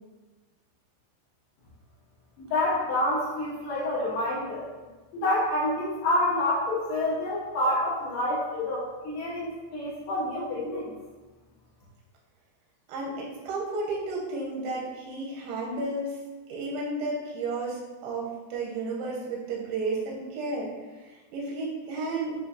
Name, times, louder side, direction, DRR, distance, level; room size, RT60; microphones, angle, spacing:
voice 1, 2.4-4.7 5.1-10.9, left 1 dB, 80° left, -9 dB, 1.9 m, -28 dB
voice 2, 12.9-16.2 16.5-22.4, right 2 dB, 85° right, -4 dB, 2.3 m, -32 dB
7.3 x 2.5 x 2.6 m, 1.2 s
omnidirectional pair, 5.5 m